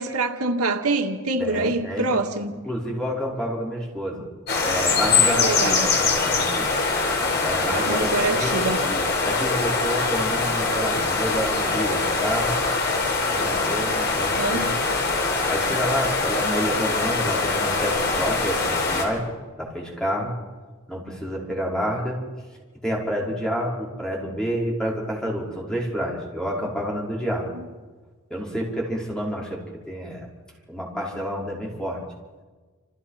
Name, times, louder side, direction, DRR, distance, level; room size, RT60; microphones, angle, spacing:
voice 1, 0.0-2.5 5.2-5.9 7.7-8.8 14.3-14.8 27.5-27.6, right 3 dB, 90° right, 5 dB, 2.0 m, -26 dB
voice 2, 1.4-2.2 2.6-4.2 4.6-6.7 7.4-12.6 13.3-14.7 15.5-19.2 19.6-20.3 20.9-22.2 22.8-27.5 28.3-29.6 29.9-30.3 30.7-32.0, equal, 5° left, -3 dB, 5.4 m, -29 dB
sound 1, 4.5-19.0, left 3 dB, 50° left, 5.2 m, -23 dB
28.0 x 28.0 x 5.9 m, 1.4 s
head